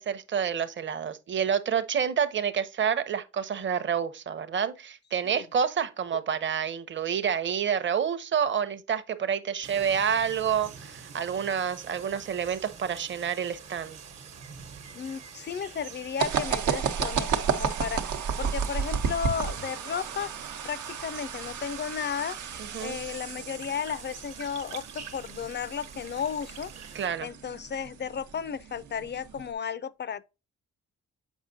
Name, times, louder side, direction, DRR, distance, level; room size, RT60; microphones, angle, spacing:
voice 1, 0.0-14.0 22.7-23.0 26.9-27.3, right 7 dB, 40° right, 0.7 m, -28 dB
sound 1, 9.6-27.1, right 7 dB, 60° right, 1.1 m, -47 dB
voice 2, 14.9-18.1 18.4-20.3 20.6-22.4 22.8-26.7 27.2-30.2, left 7 dB, 40° left, 0.4 m, -34 dB
sound 2, 16.2-29.5, right 7 dB, 80° right, 0.9 m, -33 dB
7.2 x 5.1 x 2.6 m
cardioid pair, 110°, 29 cm